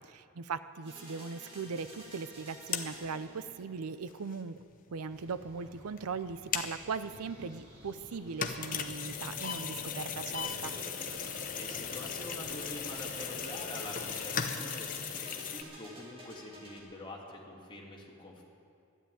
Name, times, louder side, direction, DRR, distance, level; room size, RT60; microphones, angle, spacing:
voice 1, 0.0-4.6 4.9-10.7, right 5 dB, 90° right, 14 dB, 0.5 m, -39 dB
sound 1, 0.9-3.9 10.4-16.8, right 1 dB, 25° right, 2.8 m, -50 dB
sound 2, 1.7-1.8 2.0-2.1 2.5-4.9 5.2-5.5 5.7-6.9 7.3-7.4 7.8-15.6, left 7 dB, 35° left, 0.8 m, -37 dB
sound 3, 5.1-14.1, equal, 50° right, 3.8 m, -54 dB
voice 2, 11.6-18.4, left 1 dB, 20° left, -2 dB, 2.0 m, -46 dB
12.5 x 11.0 x 9.0 m, 2.4 s
head